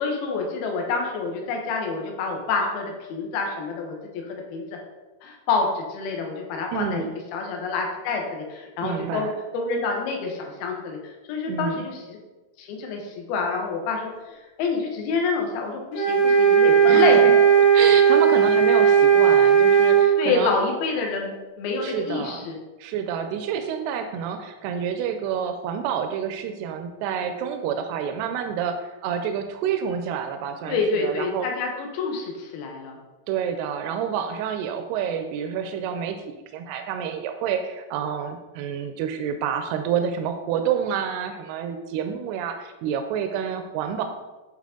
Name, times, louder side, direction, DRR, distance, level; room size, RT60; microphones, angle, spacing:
voice 1, 0.0-4.6 5.2-7.1 7.3-12.2 12.6-17.2 20.2-22.6 30.7-33.0, left 4 dB, 75° left, 1 dB, 2.8 m, -27 dB
voice 2, 6.7-7.1 8.8-9.3 11.4-11.9 16.9-17.3 17.7-20.5 21.8-22.5 22.8-31.5 33.3-44.0, right 8 dB, 85° right, 6 dB, 2.6 m, -28 dB
sound 1, 15.9-20.1, right 7 dB, 55° left, 2.1 m, -16 dB
11.0 x 4.0 x 3.7 m, 1.2 s
omnidirectional pair, 4.6 m